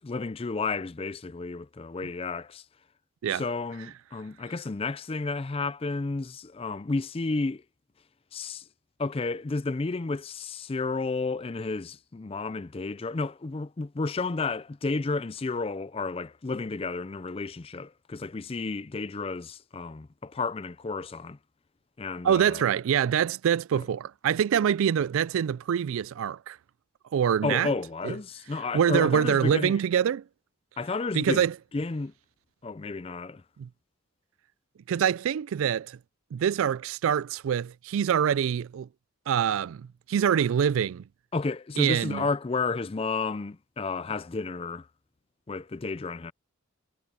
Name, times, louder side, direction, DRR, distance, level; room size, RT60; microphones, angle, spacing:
voice 1, 0.0-2.6 3.3-7.6 8.3-8.7 9.0-21.4 22.0-22.7 23.7-23.8 27.4-29.8 30.8-31.4 31.7-32.1 32.6-33.4 41.3-44.9 45.5-46.3, left 3 dB, 25° left, 0.4 m, -32 dB
voice 2, 22.2-26.6 27.1-27.7 28.0-28.1 28.7-30.2 31.1-31.5 33.6-33.7 34.9-36.0 36.3-38.9 39.3-41.0 41.8-42.3, right 8 dB, 70° right, 0.3 m, -25 dB
head